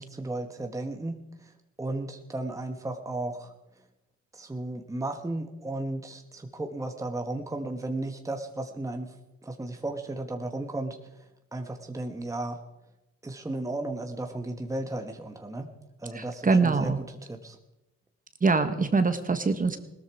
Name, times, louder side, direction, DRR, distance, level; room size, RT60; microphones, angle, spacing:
voice 1, 0.0-1.5 1.8-3.5 4.3-9.1 9.4-12.6 13.2-15.7 16.0-17.6, right 2 dB, 10° right, 5 dB, 1.2 m, -34 dB
voice 2, 16.1-17.0 18.4-19.8, right 4 dB, 25° right, 9 dB, 1.5 m, -24 dB
18.0 x 13.5 x 4.8 m, 0.95 s
cardioid pair, 90°, 30 cm